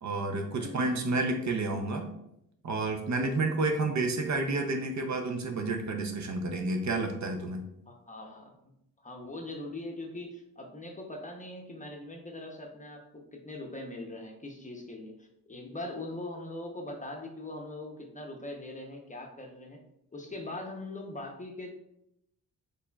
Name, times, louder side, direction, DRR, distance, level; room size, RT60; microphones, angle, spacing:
voice 1, 0.0-2.1 2.6-7.6, right 2 dB, 50° right, 4 dB, 0.6 m, -30 dB
voice 2, 0.5-1.0 7.9-8.5 9.0-19.8 20.1-21.8, left 2 dB, 20° left, 2 dB, 0.7 m, -41 dB
4.2 x 3.3 x 2.2 m, 0.79 s
cardioid pair, 65°, 37 cm